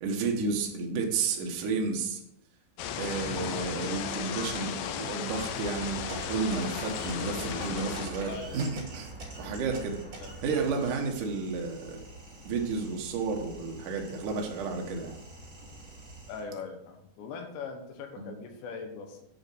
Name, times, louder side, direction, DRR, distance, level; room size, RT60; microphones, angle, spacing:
voice 1, 0.0-2.2 3.0-9.1 9.4-10.0 10.4-12.0 12.4-15.2 18.2-18.3, right 4 dB, 85° right, 1 dB, 1.8 m, -32 dB
sound 1, 2.8-8.1, left 9 dB, 90° left, 3.3 m, -36 dB
sound 2, 2.9-8.3, left 3 dB, 50° left, 3.4 m, -45 dB
sound 3, 5.3-16.4, right 2 dB, 30° right, 2.7 m, -44 dB
voice 2, 8.3-8.7 10.2-10.3 16.3-19.3, left 5 dB, 70° left, 4 dB, 3.1 m, -41 dB
9.5 x 5.6 x 6.2 m, 0.78 s
omnidirectional pair, 5.9 m